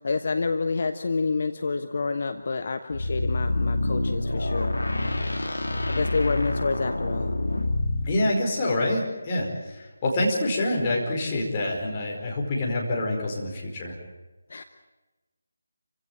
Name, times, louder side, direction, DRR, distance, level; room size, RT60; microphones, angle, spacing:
voice 1, 0.0-4.8 5.8-7.4 14.5-14.6, left 4 dB, 40° left, 8 dB, 1.1 m, -28 dB
sound 1, 2.9-8.2, left 2 dB, 65° left, 2.6 m, -27 dB
voice 2, 8.0-14.0, left 1 dB, 20° left, -2 dB, 4.9 m, -26 dB
27.5 x 16.5 x 8.9 m, 1.2 s
figure-of-eight pair, 155°, 0 cm